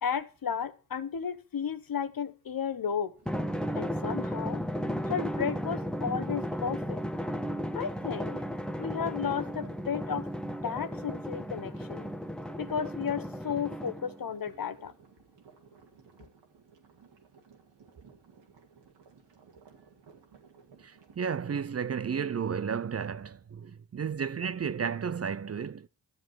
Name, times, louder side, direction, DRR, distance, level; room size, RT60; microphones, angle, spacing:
voice 1, 0.0-3.1 3.7-4.6 5.1-7.0 7.7-8.4 8.8-10.3 10.6-12.1 12.6-14.9, left 7 dB, 55° left, 1.1 m, -33 dB
sound 1, 3.2-21.8, right 5 dB, 85° right, 2.2 m, -57 dB
Drum, 3.3-14.3, equal, ahead, 0.9 m, -34 dB
voice 2, 20.8-25.9, right 7 dB, 35° right, 0.6 m, -33 dB
12.0 x 7.4 x 4.5 m
cardioid pair, 50°, 41 cm